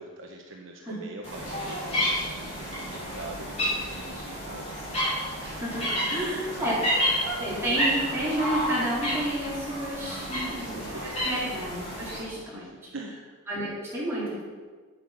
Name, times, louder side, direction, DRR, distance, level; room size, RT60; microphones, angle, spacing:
voice 1, 0.0-4.8 5.4-5.6 6.1-6.8 10.0-11.3 11.9-13.2, right 2 dB, 60° right, 0 dB, 1.0 m, -44 dB
sound 1, 1.2-12.2, equal, 30° left, 3.9 m, -30 dB
voice 2, 5.6-7.0 7.4-10.9 11.2-12.6 13.5-14.4, right 1 dB, 10° right, -9 dB, 3.9 m, -30 dB
9.1 x 8.2 x 6.0 m, 1.5 s
head